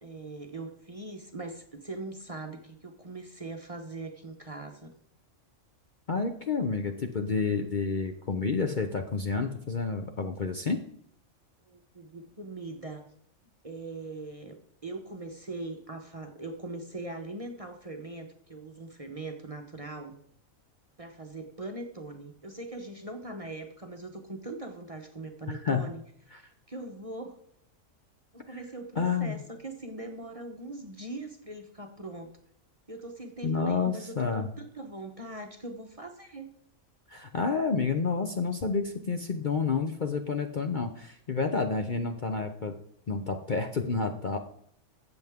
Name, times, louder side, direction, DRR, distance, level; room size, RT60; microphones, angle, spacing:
voice 1, 0.0-4.9 11.6-13.1 13.6-20.1 21.0-26.0 26.3-26.4 26.7-27.4 28.3-32.3 32.9-36.5, right 2 dB, 30° right, 4 dB, 0.9 m, -41 dB
voice 2, 6.1-10.8 25.5-25.9 26.3-26.4 29.0-29.4 33.4-34.5 37.1-42.8 43.1-44.4, left 4 dB, 45° left, 5 dB, 0.8 m, -29 dB
13.5 x 8.0 x 3.6 m, 0.66 s
omnidirectional pair, 1.4 m